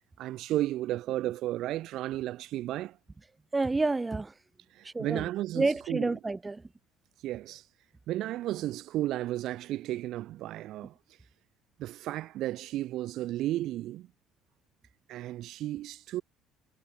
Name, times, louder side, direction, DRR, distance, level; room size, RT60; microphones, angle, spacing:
voice 1, 0.2-3.0 4.7-6.1 7.2-7.6 8.1-10.9 11.8-14.1 15.1-16.2, right 14 dB, 65° right, 0.7 m, -33 dB
voice 2, 3.5-4.3 4.8-5.3 5.5-6.6, right 3 dB, 15° right, 1.1 m, -29 dB
cardioid pair, 115°, 0 cm